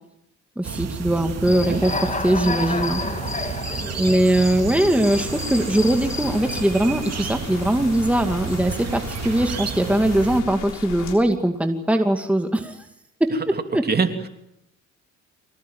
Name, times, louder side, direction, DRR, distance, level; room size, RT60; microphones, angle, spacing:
voice 1, 0.6-3.3 4.0-12.9 13.2-13.8, right 1 dB, 5° right, 5 dB, 2.3 m, -21 dB
sound 1, 0.6-10.4, right 7 dB, 55° right, 3.0 m, -32 dB
Human voice / Cricket, 1.4-6.6, left 3 dB, 25° left, 2.7 m, -31 dB
voice 2, 1.5-1.8 13.9-14.3, right 5 dB, 30° right, 6 dB, 3.2 m, -24 dB
sound 2, 5.0-11.2, left 8 dB, 85° left, 6.7 m, -38 dB
25.5 x 18.5 x 9.4 m, 0.81 s
cardioid pair, 90°, 30 cm